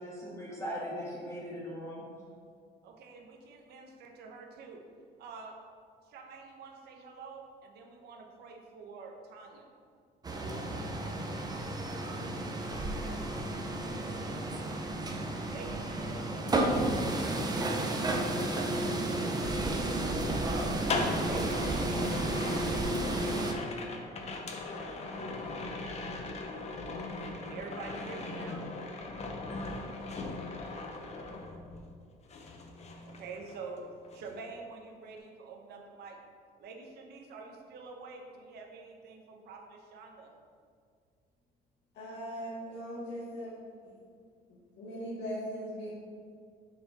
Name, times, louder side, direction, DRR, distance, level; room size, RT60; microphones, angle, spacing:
voice 1, 0.0-2.0, equal, 15° left, -6 dB, 1.6 m, -39 dB
voice 2, 2.8-4.8 5.2-5.6 6.0-9.7 15.5-16.5 21.2-22.3 27.4-28.7 33.0-33.9 34.1-36.2 36.6-40.3, right 4 dB, 70° right, 2 dB, 1.0 m, -47 dB
sound 1, 10.2-23.5, right 2 dB, 25° right, 0.7 m, -32 dB
sound 2, 18.7-32.0 32.3-33.8 34.0-34.4, left 3 dB, 40° left, 0.8 m, -39 dB
voice 3, 41.9-43.5 44.8-45.9, equal, 80° left, -9 dB, 1.6 m, -39 dB
6.3 x 4.5 x 4.1 m, 2.1 s
cardioid pair, 110°, 17 cm